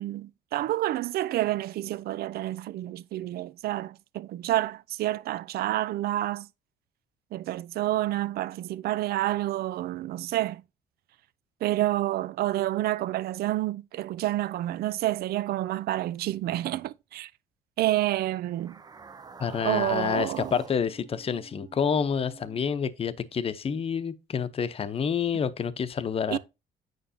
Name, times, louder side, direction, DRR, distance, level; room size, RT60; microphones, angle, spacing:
voice 1, 0.0-6.5 7.3-10.6 11.6-17.3 17.8-18.8 19.6-20.5 26.3-26.4, right 15 dB, 65° right, 0.6 m, -29 dB
sound 1, 18.5-22.9, right 5 dB, 25° right, 0.7 m, -46 dB
voice 2, 19.4-26.4, left 7 dB, 35° left, 0.8 m, -28 dB
9.1 x 6.1 x 2.8 m
cardioid pair, 110°, 17 cm